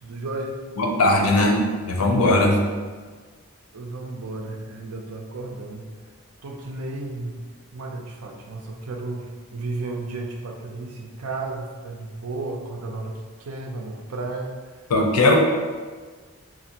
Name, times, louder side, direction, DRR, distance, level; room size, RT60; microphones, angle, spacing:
voice 1, 0.0-0.6 3.7-5.9 6.4-7.3 7.7-14.6, right 2 dB, 80° right, 2 dB, 0.5 m, -33 dB
voice 2, 0.8-2.6 14.9-15.4, left 2 dB, 90° left, 2 dB, 0.6 m, -19 dB
4.1 x 2.5 x 2.8 m, 1.5 s
head